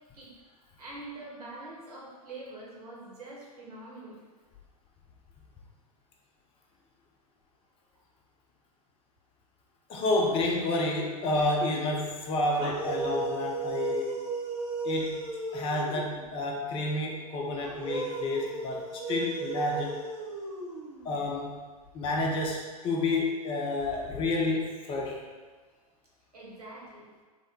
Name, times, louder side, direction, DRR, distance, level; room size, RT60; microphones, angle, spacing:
voice 1, 0.8-4.2 26.3-27.1, right 2 dB, 75° right, -5 dB, 1.2 m, -44 dB
voice 2, 9.9-14.1 14.8-15.1 15.5-18.8 19.1-20.0 21.0-21.6 21.9-25.2, left 2 dB, 25° left, 0 dB, 0.6 m, -29 dB
sound 1, 12.5-16.3 17.6-21.2, right 3 dB, 25° right, 0.7 m, -35 dB
3.6 x 2.1 x 3.6 m, 1.4 s
figure-of-eight pair, 95°, 20 cm